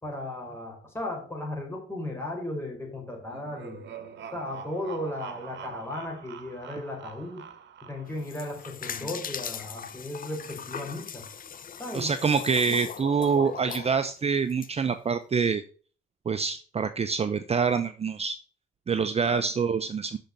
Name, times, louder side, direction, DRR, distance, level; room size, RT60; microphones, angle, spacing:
voice 1, 0.0-3.8 4.3-7.5 7.8-11.3 11.8-12.1 12.7-12.8 19.3-19.5, left 1 dB, 10° left, 0 dB, 5.0 m, -36 dB
sound 1, 3.2-8.3, right 8 dB, 65° right, 1.5 m, -44 dB
sound 2, 8.1-14.7, left 7 dB, 45° left, 0.8 m, -39 dB
voice 2, 11.9-15.6 16.3-18.4 18.9-20.2, right 5 dB, 30° right, 10 dB, 0.7 m, -26 dB
6.6 x 6.5 x 7.2 m, 0.41 s
cardioid pair, 90°, 20 cm